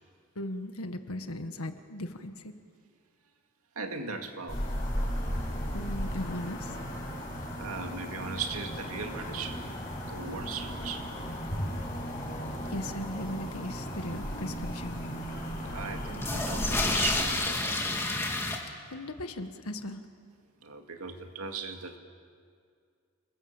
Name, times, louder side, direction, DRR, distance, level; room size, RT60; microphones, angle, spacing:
voice 1, 0.4-2.5 5.7-6.8 12.7-15.0 18.9-20.0, left 1 dB, 85° left, 7 dB, 1.7 m, -37 dB
voice 2, 3.8-4.7 7.6-9.6 10.1-11.1 15.7-18.1 20.6-22.0, right 5 dB, 85° right, 4 dB, 2.2 m, -38 dB
sound 1, 4.5-17.2, equal, 35° left, 6.2 m, -36 dB
sound 2, 9.4-9.5 9.7-9.8 10.5-10.6 16.1-18.6, left 2 dB, 10° left, 2.1 m, -29 dB
29.0 x 21.5 x 7.3 m, 2.2 s
head